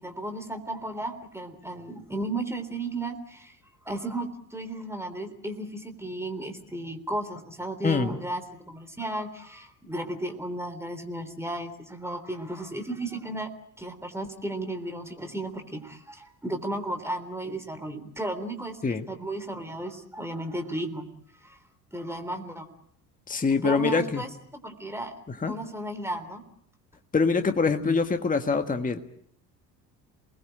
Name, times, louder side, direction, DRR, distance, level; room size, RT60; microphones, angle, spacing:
voice 1, 0.0-3.6 3.9-8.4 8.7-13.5 13.8-21.0 21.4-21.6 21.9-22.7 23.6-25.1 25.5-26.4, right 1 dB, 5° right, 6 dB, 3.6 m, -34 dB
voice 2, 7.8-8.1 18.8-19.0 23.3-24.2 25.4-25.5 27.1-29.0, left 4 dB, 15° left, 7 dB, 1.7 m, -24 dB
29.5 x 20.5 x 7.8 m, 0.68 s
figure-of-eight pair, 60°, 50 cm